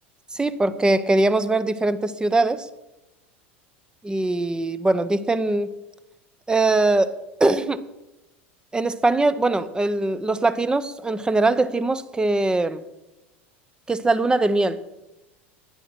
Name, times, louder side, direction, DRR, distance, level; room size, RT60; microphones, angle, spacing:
voice 1, 0.3-2.7 4.0-5.7 6.5-7.8 8.7-12.8 13.9-14.8, right 2 dB, 10° right, 15 dB, 0.8 m, -21 dB
11.0 x 9.9 x 5.9 m, 0.98 s
hypercardioid pair, 85°, 7 cm